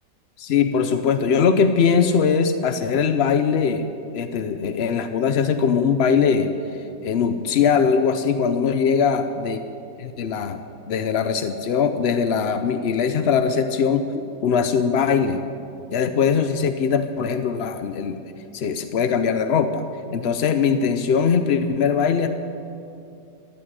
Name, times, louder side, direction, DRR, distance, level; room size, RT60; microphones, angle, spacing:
voice 1, 0.4-3.9 4.1-6.5 7.0-9.6 10.0-10.6 10.9-15.4 15.9-18.2 18.5-19.8 20.1-22.3, left 6 dB, 75° left, 9 dB, 0.6 m, -21 dB
15.0 x 8.5 x 9.6 m, 2.7 s
omnidirectional pair, 1.9 m